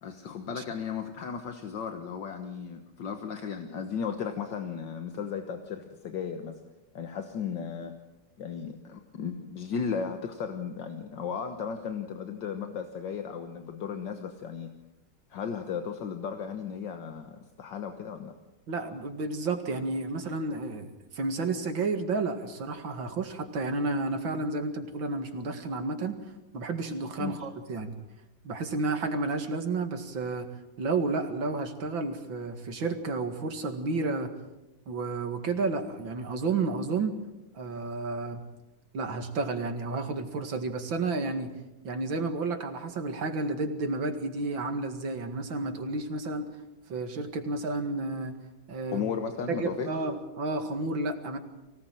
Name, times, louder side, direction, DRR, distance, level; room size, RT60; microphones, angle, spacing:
voice 1, 0.0-6.6 6.9-8.0 8.4-14.7 15.3-18.3 27.2-27.4 48.9-49.9, left 6 dB, 70° left, 6 dB, 1.9 m, -35 dB
voice 2, 18.7-26.2 26.5-27.9 28.4-30.5 30.8-34.3 34.9-37.1 37.5-38.4 38.9-41.5 41.8-46.5 46.9-48.4 48.7-49.1 49.5-51.4, right 3 dB, 85° right, 6 dB, 2.8 m, -31 dB
24.0 x 17.5 x 7.7 m, 0.99 s
omnidirectional pair, 2.1 m